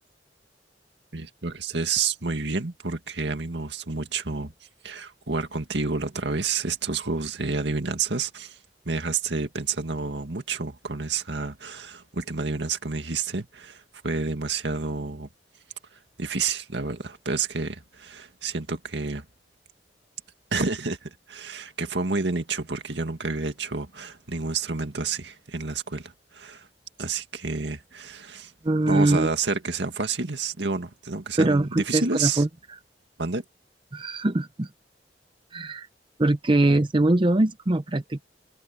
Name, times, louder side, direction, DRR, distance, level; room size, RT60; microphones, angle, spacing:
voice 1, 1.1-4.5 4.8-8.6 8.9-15.3 16.2-19.2 20.5-26.7 27.0-28.5 28.9-32.4 33.2-33.4, right 4 dB, 75° right, 2.0 m, -29 dB
voice 2, 28.6-29.3 31.4-32.5 33.9-34.7 35.5-35.9 36.2-38.2, right 2 dB, 30° right, 0.6 m, -22 dB
head